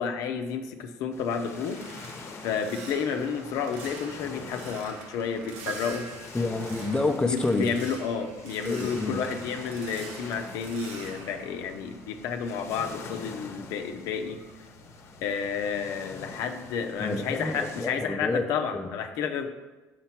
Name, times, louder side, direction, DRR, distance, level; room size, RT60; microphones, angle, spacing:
voice 1, 0.0-1.8 2.4-6.1 7.1-14.4 15.2-19.5, left 6 dB, 75° left, 5 dB, 0.7 m, -31 dB
sound 1, 0.9-12.6 12.9-15.6 15.9-16.2 16.6-16.9, right 3 dB, 90° right, 1.0 m, -47 dB
sound 2, 1.1-17.9, left 4 dB, 50° left, 0.9 m, -45 dB
sound 3, 5.7-7.0, right 4 dB, 60° right, 0.6 m, -40 dB
voice 2, 6.3-7.7 8.7-9.2 17.0-18.5 18.7-18.9, left 2 dB, 15° left, 4 dB, 0.7 m, -28 dB
6.7 x 4.4 x 5.9 m, 1.2 s
supercardioid pair, 90°, 6 cm